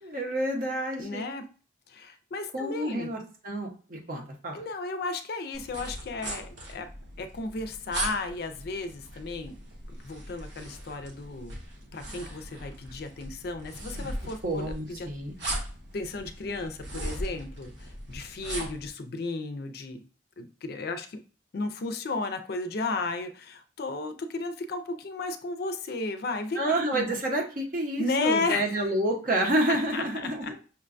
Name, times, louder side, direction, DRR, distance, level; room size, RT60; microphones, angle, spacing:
voice 1, 0.0-1.2 2.5-4.6 14.4-15.3 26.6-30.6, right 1 dB, 50° right, 1 dB, 0.8 m, -29 dB
voice 2, 1.0-1.4 1.9-3.1 4.5-6.9 7.2-9.5 10.0-11.6 11.9-15.1 15.4-15.6 15.9-20.0 20.4-21.2 21.5-27.0 28.0-28.8 29.9-30.5, left 3 dB, 55° left, 9 dB, 0.4 m, -34 dB
sound 1, 5.5-18.9, right 1 dB, 75° right, 1.1 m, -39 dB
5.7 x 2.2 x 2.5 m, 0.38 s
head